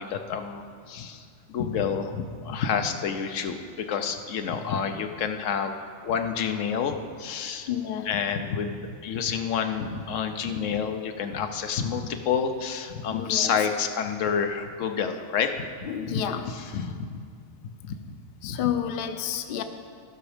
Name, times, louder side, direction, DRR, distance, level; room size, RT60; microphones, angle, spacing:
voice 1, 0.0-5.8 6.0-7.7 8.0-16.2 16.5-17.2 17.6-18.0 18.4-18.7, left 6 dB, 90° left, 7 dB, 1.1 m, -29 dB
voice 2, 7.7-8.1 13.1-13.5 15.9-16.5 18.4-19.6, left 9 dB, 55° left, 8 dB, 0.7 m, -30 dB
15.5 x 6.2 x 4.9 m, 2.2 s
omnidirectional pair, 1.3 m